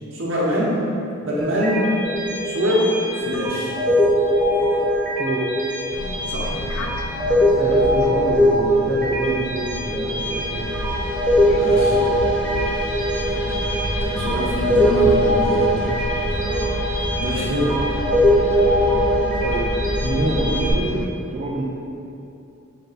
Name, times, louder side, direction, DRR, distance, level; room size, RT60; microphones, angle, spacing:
voice 1, 0.1-0.8 1.2-1.9 2.4-3.7 6.3-6.5 11.5-11.9 13.3-13.7 14.0-15.9 17.2-17.8, equal, 65° right, -5 dB, 0.8 m, -24 dB
sound 1, 1.4-20.7, equal, 10° left, 0.6 m, -21 dB
voice 2, 5.2-5.6 6.5-6.6 7.3-10.9 11.5-12.7 16.4-16.8 19.4-21.6, right 2 dB, 35° right, -6 dB, 0.3 m, -28 dB
sound 2, 5.9-21.1, left 2 dB, 75° left, 0.3 m, -31 dB
5.2 x 2.2 x 4.0 m, 2.8 s
head